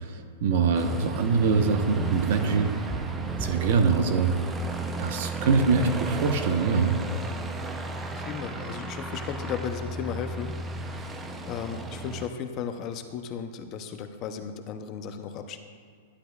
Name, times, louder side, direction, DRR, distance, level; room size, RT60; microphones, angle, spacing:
voice 1, 0.0-3.0 3.4-4.3 5.0-7.0, right 5 dB, 55° right, 6 dB, 0.9 m, -24 dB
Aircraft, 0.7-12.3, right 2 dB, 15° right, 0.5 m, -34 dB
voice 2, 8.1-10.5 11.4-15.6, left 7 dB, 30° left, 7 dB, 0.5 m, -35 dB
11.5 x 10.0 x 2.3 m, 2.1 s
hypercardioid pair, 155°, 0 cm